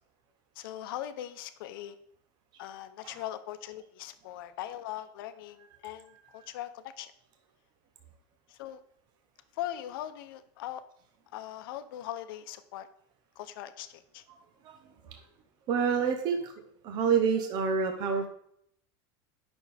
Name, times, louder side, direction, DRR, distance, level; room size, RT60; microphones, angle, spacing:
voice 1, 0.6-2.0 2.6-7.1 8.5-8.8 9.5-10.8 11.3-12.9 13.4-14.2, left 12 dB, 80° left, 11 dB, 0.7 m, -40 dB
voice 2, 15.7-16.5 16.8-18.3, right 6 dB, 40° right, 5 dB, 0.8 m, -28 dB
9.0 x 6.1 x 3.4 m, 0.69 s
supercardioid pair, 155°, 12 cm